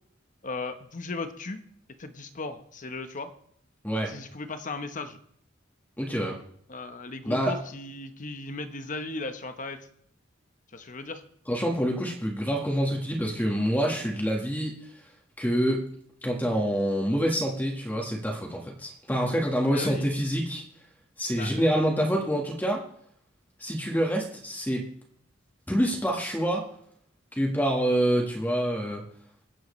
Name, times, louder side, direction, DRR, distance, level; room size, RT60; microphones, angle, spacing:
voice 1, 0.4-1.6 2.0-3.3 4.1-5.2 6.7-9.8 10.7-11.2 19.7-20.1 21.4-21.6, left 3 dB, 40° left, 8 dB, 1.1 m, -36 dB
voice 2, 6.0-6.4 7.2-7.5 11.5-14.7 15.4-15.9 16.2-20.6 21.2-22.8 23.6-24.9 25.7-26.7 27.3-29.0, equal, 10° left, -1 dB, 1.6 m, -26 dB
22.5 x 7.8 x 3.2 m, 0.68 s
head